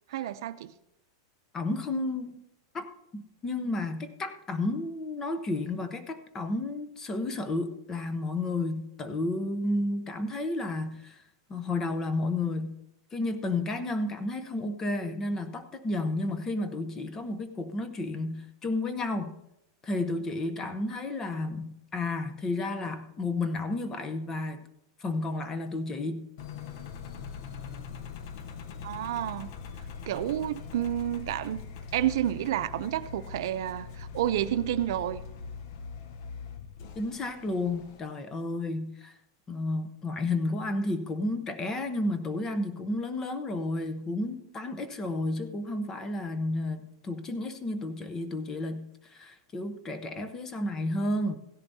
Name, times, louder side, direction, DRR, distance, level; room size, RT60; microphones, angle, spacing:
voice 1, 0.1-0.7 28.8-29.5 30.1-31.6 31.9-35.2, right 12 dB, 70° right, 12 dB, 0.5 m, -30 dB
voice 2, 1.5-2.4 2.7-11.2 11.5-12.8 13.1-19.4 19.8-24.7 25.0-26.3 37.0-39.1 39.5-51.3, left 2 dB, 20° left, 9 dB, 0.8 m, -32 dB
Engine, 26.4-38.0, left 6 dB, 60° left, 0.8 m, -42 dB
16.0 x 10.5 x 2.8 m, 0.83 s
supercardioid pair, 145°, 2 cm